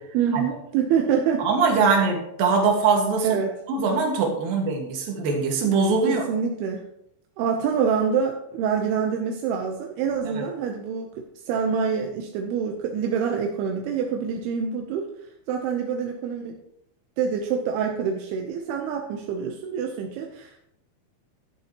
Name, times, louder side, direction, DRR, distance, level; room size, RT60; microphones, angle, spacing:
voice 1, 0.1-1.5 1.8-2.0 3.2-3.5 6.1-6.9 7.4-15.1 15.5-16.6 17.2-20.6, right 7 dB, 85° right, 2 dB, 2.8 m, -26 dB
voice 2, 1.4-3.3 3.7-6.2 10.4-10.5, right 4 dB, 70° right, 1 dB, 3.4 m, -22 dB
11.5 x 11.0 x 3.0 m, 0.78 s
omnidirectional pair, 4.5 m